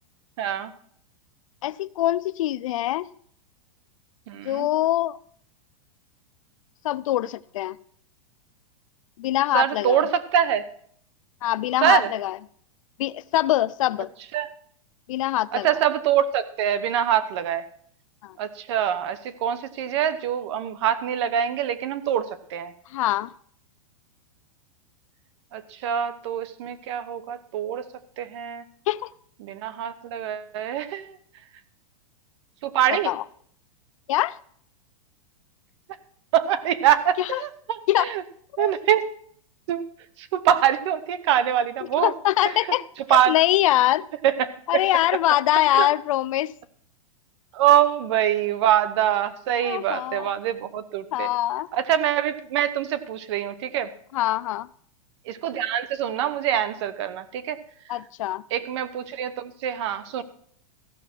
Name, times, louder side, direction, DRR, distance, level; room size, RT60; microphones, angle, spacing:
voice 1, 0.4-0.7 4.3-4.7 9.5-10.6 11.8-12.1 14.3-14.5 15.5-17.6 18.4-22.7 25.5-27.8 28.2-28.6 29.4-31.2 32.6-33.1 36.3-38.2 38.6-39.0 39.7-39.8 40.2-42.1 42.4-42.5 43.1-43.3 44.2-44.5 45.7-45.9 47.5-51.3 51.7-53.9 55.3-57.6 58.5-60.2, right 10 dB, 50° right, 0.9 m, -24 dB
voice 2, 1.6-3.1 4.4-5.2 6.8-7.8 9.2-10.0 11.4-12.4 13.0-14.1 15.1-15.7 18.2-18.4 22.9-23.3 28.9-29.1 32.9-33.2 34.1-34.4 37.2-37.4 37.9-38.0 38.6-38.7 42.0-44.0 44.7-46.5 49.6-50.3 51.1-51.7 54.1-54.7 57.9-58.4, left 14 dB, 65° left, 0.4 m, -23 dB
15.0 x 5.8 x 6.0 m
supercardioid pair, 155°, 18 cm